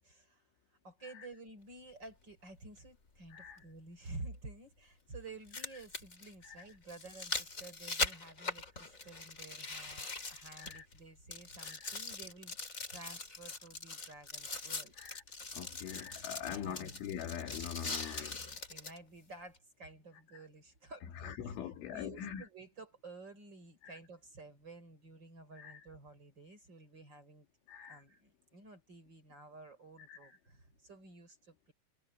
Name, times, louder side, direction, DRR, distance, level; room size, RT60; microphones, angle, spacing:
voice 1, 0.0-0.4 0.8-12.6 12.9-14.9 16.4-16.9 17.8-21.5 21.9-27.5 27.9-31.7, right 2 dB, 25° right, 4.9 m, -52 dB
sound 1, 2.0-2.1 4.1-4.2 5.3-11.0 11.3-19.0 19.6-19.7, left 3 dB, 25° left, 2.1 m, -41 dB
voice 2, 11.6-12.0 15.0-15.2 15.5-18.5 20.3-20.4 21.2-22.5 23.8-24.0 25.6-25.8 27.7-28.0 30.1-30.3, left 9 dB, 85° left, 4.6 m, -43 dB
omnidirectional pair, 5.4 m